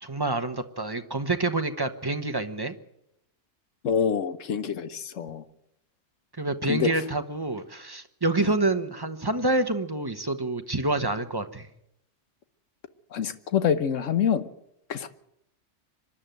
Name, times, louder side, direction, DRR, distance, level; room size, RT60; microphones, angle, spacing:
voice 1, 0.0-2.7 6.4-11.7, right 2 dB, 20° right, 8 dB, 1.1 m, -27 dB
voice 2, 3.8-5.4 6.7-6.9 8.4-8.5 13.1-14.5 14.9-15.1, left 7 dB, 90° left, 11 dB, 1.3 m, -26 dB
25.0 x 11.5 x 9.2 m, 0.77 s
omnidirectional pair, 1.3 m